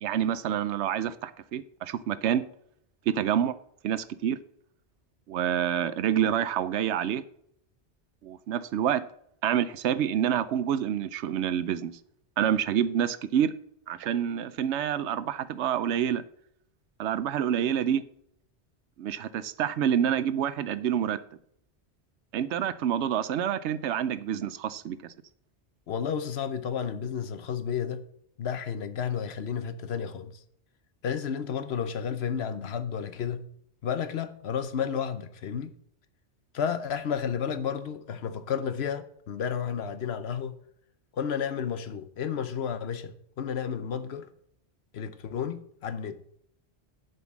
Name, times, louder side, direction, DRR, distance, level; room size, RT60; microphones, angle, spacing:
voice 1, 0.0-2.4 3.1-3.5 3.8-4.4 5.3-7.2 8.2-9.0 9.4-11.9 12.4-13.5 13.9-16.2 17.0-18.0 19.0-21.2 22.3-25.1, right 9 dB, 80° right, 0.9 m, -27 dB
voice 2, 25.9-28.0 28.4-30.4 31.0-33.4 33.8-35.7 36.5-40.6 41.1-44.3 44.9-46.2, left 7 dB, 70° left, 1.0 m, -32 dB
7.8 x 5.4 x 7.2 m
omnidirectional pair, 1.1 m